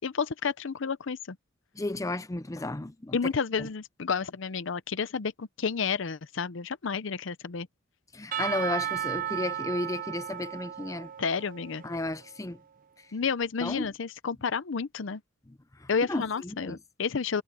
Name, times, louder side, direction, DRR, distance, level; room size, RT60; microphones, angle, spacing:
voice 1, 0.0-1.4 3.1-7.7 11.2-11.8 13.1-15.2 15.9-17.4, left 5 dB, 65° left, 0.6 m, -31 dB
voice 2, 1.8-3.2 3.6-3.7 8.1-11.1 11.8-12.6 13.6-13.9 16.1-16.8, left 2 dB, 15° left, 0.6 m, -33 dB
Percussion / Church bell, 8.3-12.3, right 10 dB, 45° right, 0.7 m, -35 dB
head